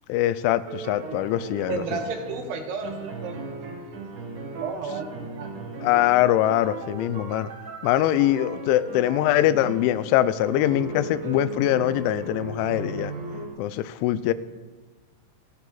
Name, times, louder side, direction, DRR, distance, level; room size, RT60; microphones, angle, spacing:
voice 1, 0.1-1.8 5.8-7.5 7.8-13.1 13.6-14.3, left 13 dB, 85° left, 15 dB, 2.9 m, -23 dB
sound 1, 0.7-13.5, right 3 dB, 50° right, 2.7 m, -37 dB
voice 2, 1.7-4.0 4.6-5.5, right 4 dB, 70° right, 4 dB, 3.2 m, -33 dB
28.0 x 10.0 x 4.0 m, 1.3 s
omnidirectional pair, 5.4 m